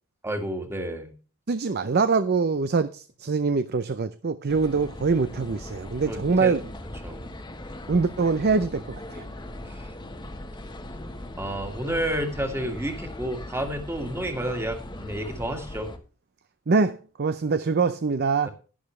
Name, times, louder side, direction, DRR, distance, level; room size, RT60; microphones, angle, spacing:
voice 1, 0.2-1.1 6.1-6.6 7.0-7.2 9.6-9.9 11.4-15.9 18.4-18.5, right 1 dB, 10° right, 1.9 m, -30 dB
voice 2, 1.5-6.6 7.9-9.2 16.7-18.5, right 4 dB, 45° right, 0.5 m, -24 dB
sound 1, 4.5-16.0, left 1 dB, 20° left, 1.2 m, -39 dB
11.5 x 10.5 x 3.2 m
head